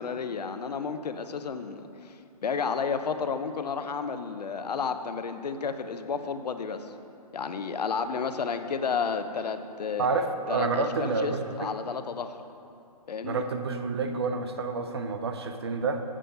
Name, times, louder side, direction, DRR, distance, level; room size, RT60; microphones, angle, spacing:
voice 1, 0.0-6.9 7.3-10.1 10.5-12.4 13.1-13.4, left 5 dB, 80° left, 9 dB, 0.7 m, -32 dB
voice 2, 10.0-11.7 13.2-16.0, right 4 dB, 40° right, 7 dB, 0.6 m, -29 dB
8.4 x 7.5 x 5.3 m, 2.6 s
hypercardioid pair, 170°, 20 cm